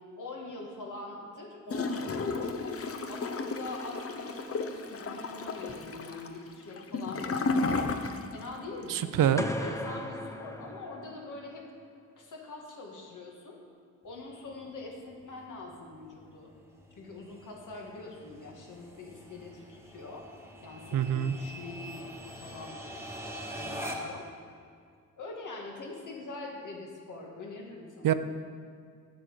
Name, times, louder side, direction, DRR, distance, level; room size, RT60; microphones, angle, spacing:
voice 1, 0.2-2.5 3.1-7.7 8.3-11.7 12.2-13.6 14.0-16.5 17.0-20.3 20.6-22.8 23.2-24.3 25.2-28.1, left 3 dB, 65° left, 0 dB, 2.0 m, -43 dB
Gurgling / Toilet flush, 1.7-8.5 8.8-8.9, left 3 dB, 45° left, 0.8 m, -33 dB
voice 2, 8.9-9.4 20.9-21.3 28.0-28.1, right 10 dB, 75° right, 11 dB, 0.6 m, -25 dB
sound 1, 9.4-11.5, left 1 dB, 10° left, 0.7 m, -37 dB
sound 2, 14.1-24.3, equal, 10° right, 1.3 m, -44 dB
8.8 x 7.7 x 6.7 m, 2.2 s
cardioid pair, 95°, 33 cm